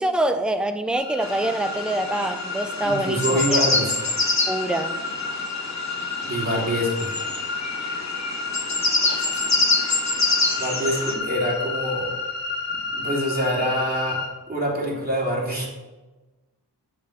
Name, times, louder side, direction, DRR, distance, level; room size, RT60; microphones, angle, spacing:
voice 1, 0.0-3.4 4.5-5.0 9.0-9.4, right 1 dB, ahead, 9 dB, 0.6 m, -25 dB
sound 1, 0.9-14.3, left 4 dB, 85° left, 1.4 m, -31 dB
sound 2, 1.2-11.1, left 3 dB, 40° left, 1.3 m, -26 dB
voice 2, 2.8-4.0 6.2-7.1 10.6-12.1 12.7-15.7, equal, 20° right, -4 dB, 3.4 m, -25 dB
8.0 x 6.8 x 5.3 m, 1.1 s
wide cardioid pair, 60°, 42 cm